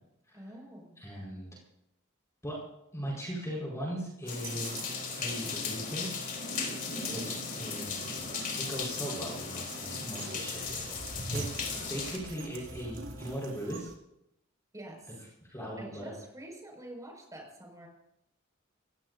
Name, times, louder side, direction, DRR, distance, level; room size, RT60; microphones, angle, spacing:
voice 1, 0.3-1.0 6.8-7.4 14.7-15.2 15.8-17.9, right 1 dB, 15° right, 0 dB, 5.7 m, -47 dB
voice 2, 1.0-1.5 2.4-2.7 2.9-4.8 5.2-6.1 7.1-8.2 8.5-10.7 11.3-11.5 11.9-13.9 15.5-16.1, equal, 15° left, -4 dB, 4.8 m, -38 dB
sound 1, 4.2-13.9, right 2 dB, 80° right, 2.4 m, -46 dB
sound 2, 4.3-12.2, left 5 dB, 45° left, 3.8 m, -37 dB
sound 3, 4.6-13.4, right 2 dB, 50° right, 4.0 m, -51 dB
25.0 x 17.5 x 2.7 m, 0.82 s
head